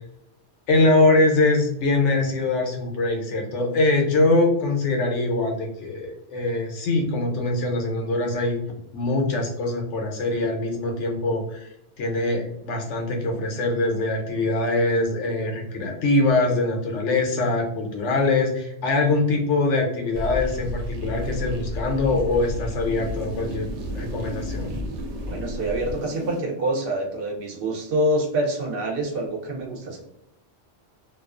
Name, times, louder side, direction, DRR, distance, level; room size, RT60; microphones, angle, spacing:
voice 1, 0.7-8.6 8.9-11.7 12.0-23.7 23.9-24.8, left 2 dB, 85° left, 2 dB, 1.0 m, -23 dB
sound 1, 20.1-26.4, left 1 dB, 85° right, 0.9 m, -32 dB
voice 2, 25.3-30.0, right 1 dB, 60° right, 0 dB, 0.7 m, -26 dB
2.4 x 2.3 x 2.3 m, 0.81 s
omnidirectional pair, 1.2 m